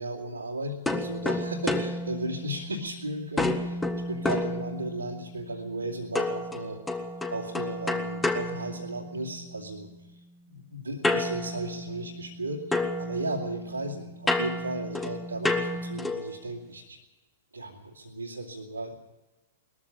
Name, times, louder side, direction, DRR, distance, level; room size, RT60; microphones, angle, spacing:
voice 1, 0.0-6.8 7.3-10.2 10.5-17.0 17.5-18.9, right 1 dB, 90° right, -5 dB, 2.5 m, -35 dB
sound 1, 0.9-2.9 3.4-5.2 6.1-9.4 11.0-12.4 12.7-16.4, left 2 dB, 10° left, 1.7 m, -30 dB
20.5 x 14.5 x 8.7 m, 1.1 s
figure-of-eight pair, 105°, 0 cm